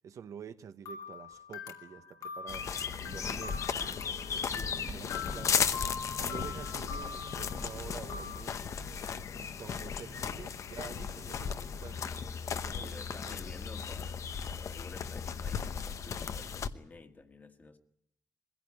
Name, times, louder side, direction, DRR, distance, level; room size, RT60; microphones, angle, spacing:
voice 1, 0.0-2.7 3.0-3.6 4.3-5.7 6.2-8.6 9.3-12.1 12.5-13.6, right 7 dB, 60° right, 1.0 m, -48 dB
sound 1, 0.9-8.4, left 6 dB, 70° left, 2.6 m, -43 dB
sound 2, 2.5-16.7, left 6 dB, 55° left, 1.0 m, -36 dB
sound 3, 3.2-9.2, right 3 dB, 30° right, 1.6 m, -50 dB
voice 2, 4.5-4.9 9.8-9.9 12.6-17.8, left 3 dB, 25° left, 1.7 m, -52 dB
22.5 x 16.0 x 10.0 m
cardioid pair, 130°, 6 cm